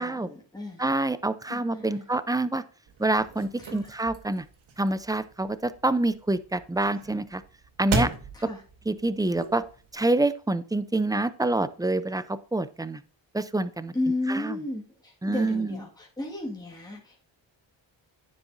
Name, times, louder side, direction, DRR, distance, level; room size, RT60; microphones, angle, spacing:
voice 1, 0.0-0.8 1.5-2.0 3.6-3.9 8.3-8.6 13.9-17.2, left 2 dB, 10° left, -2 dB, 1.8 m, -33 dB
voice 2, 0.8-2.6 3.0-4.4 4.8-7.4 7.8-8.1 8.4-8.5 8.9-9.6 9.9-13.0 13.3-13.9 14.3-14.6 15.2-15.8, right 2 dB, 10° right, 14 dB, 0.4 m, -26 dB
sound 1, 2.9-9.9, right 3 dB, 80° right, 1.4 m, -36 dB
9.6 x 7.2 x 2.6 m, 0.39 s
cardioid pair, 75°, 47 cm